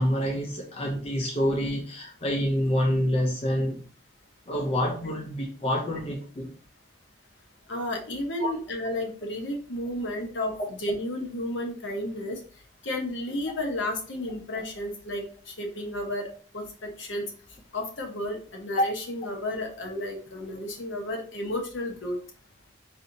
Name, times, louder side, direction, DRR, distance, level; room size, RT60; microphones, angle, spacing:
voice 1, 0.0-3.8 4.5-6.5 8.4-8.5, equal, 30° left, 1 dB, 0.4 m, -27 dB
voice 2, 7.7-12.4 12.8-16.3 16.5-17.3 17.7-22.2, left 1 dB, 65° left, 2 dB, 0.9 m, -32 dB
4.2 x 2.7 x 2.5 m, 0.42 s
head